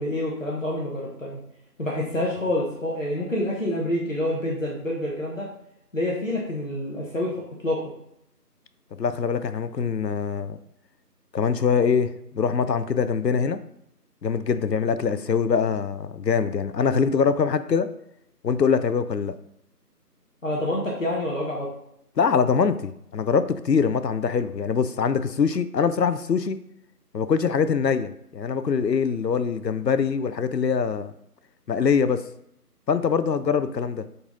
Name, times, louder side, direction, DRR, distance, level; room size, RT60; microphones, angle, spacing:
voice 1, 0.0-1.4 1.8-5.5 5.9-7.8 20.4-21.7, left 1 dB, 50° left, -4 dB, 1.2 m, -27 dB
voice 2, 9.0-10.6 11.3-13.6 14.2-17.9 18.4-19.3 22.2-26.6 27.1-31.1 31.7-32.2 32.9-34.0, left 6 dB, 85° left, 12 dB, 0.7 m, -23 dB
6.7 x 4.1 x 3.8 m, 0.75 s
figure-of-eight pair, 170°, 48 cm